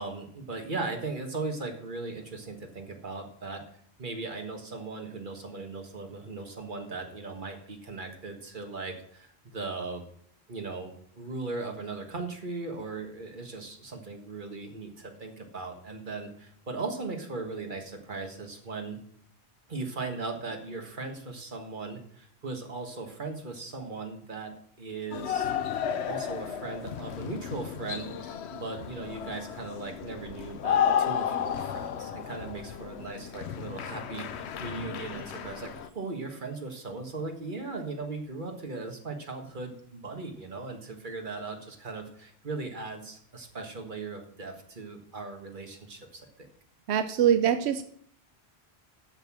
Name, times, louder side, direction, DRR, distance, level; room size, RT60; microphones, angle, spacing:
voice 1, 0.0-3.6 4.0-10.0 10.5-19.0 19.7-46.5, right 3 dB, 50° right, 4 dB, 1.7 m, -38 dB
sound 1, 25.1-35.9, left 8 dB, 90° left, 1.0 m, -33 dB
voice 2, 46.9-47.8, right 9 dB, 85° right, 9 dB, 0.9 m, -23 dB
7.8 x 6.6 x 7.5 m, 0.64 s
omnidirectional pair, 1.1 m